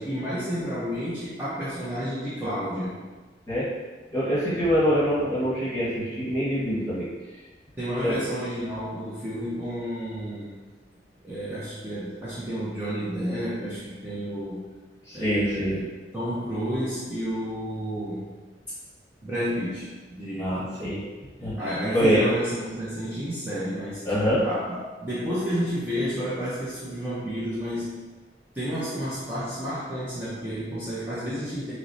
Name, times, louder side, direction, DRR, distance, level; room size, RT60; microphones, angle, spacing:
voice 1, 0.0-3.1 7.8-10.5 11.2-14.6 15.1-18.3 19.2-20.9 21.4-28.1 28.5-31.7, equal, 10° right, -11 dB, 0.6 m, -31 dB
voice 2, 4.1-7.1 8.0-8.2 15.1-15.7 20.4-21.0 21.4-21.6 21.9-22.2 24.0-24.4, equal, 15° left, -10 dB, 1.4 m, -24 dB
5.9 x 2.1 x 2.6 m, 1.3 s
head